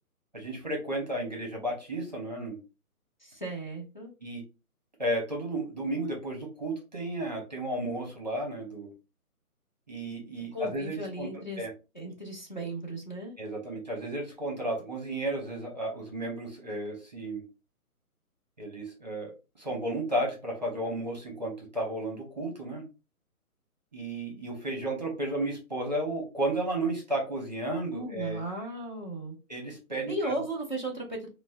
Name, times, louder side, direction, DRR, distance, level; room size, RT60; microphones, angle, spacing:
voice 1, 0.3-2.6 4.2-4.4 5.0-8.9 9.9-11.7 13.4-17.4 18.6-19.3 19.6-22.8 23.9-28.4 29.5-30.4, right 1 dB, 30° right, 0 dB, 0.7 m, -33 dB
voice 2, 3.2-4.1 10.5-11.6 11.9-13.3 27.9-29.4 30.1-31.3, right 1 dB, 30° left, -2 dB, 0.6 m, -36 dB
3.3 x 2.0 x 2.6 m, 0.29 s
hypercardioid pair, 175°, 45 cm